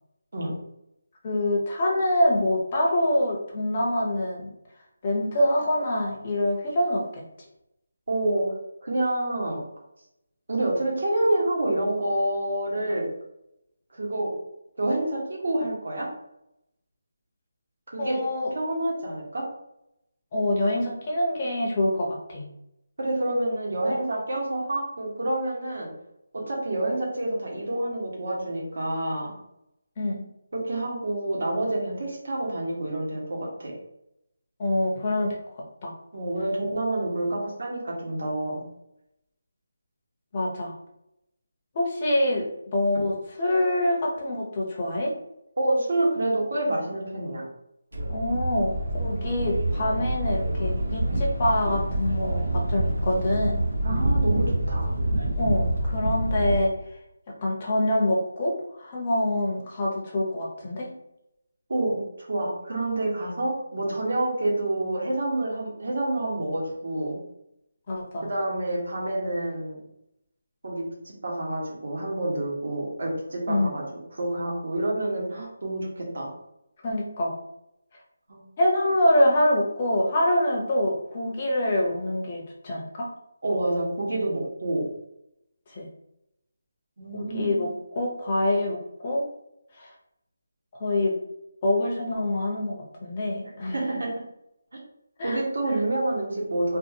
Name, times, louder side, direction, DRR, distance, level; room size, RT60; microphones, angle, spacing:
voice 1, 1.2-4.5 5.0-7.2 18.0-18.5 20.3-22.5 30.0-30.3 34.6-35.4 35.8-35.9 40.3-40.8 41.7-42.5 42.7-45.1 48.1-53.6 55.4-56.7 57.4-60.9 63.2-63.3 67.9-68.3 73.5-73.7 76.8-77.4 78.6-83.1 85.8-85.9 87.1-89.3 89.8-89.9 90.7-91.2 91.6-93.9 95.2-95.4, left 1 dB, 20° left, -2 dB, 0.5 m, -25 dB
voice 2, 8.1-8.5 8.8-9.6 10.5-13.0 13.9-14.3 14.8-16.1 17.9-18.2 18.5-19.4 23.0-25.9 26.3-29.3 30.5-33.7 36.1-38.6 45.6-47.4 53.8-54.9 61.7-67.2 68.3-69.8 70.6-73.8 74.1-76.3 78.3-78.4 83.4-84.9 87.0-87.7 93.7-94.1 95.2-96.8, right 1 dB, 55° right, -3 dB, 1.1 m, -28 dB
sound 1, 47.9-56.6, right 1 dB, 85° right, 0.8 m, -26 dB
2.6 x 2.4 x 2.7 m, 0.81 s
figure-of-eight pair, 175°, 0 cm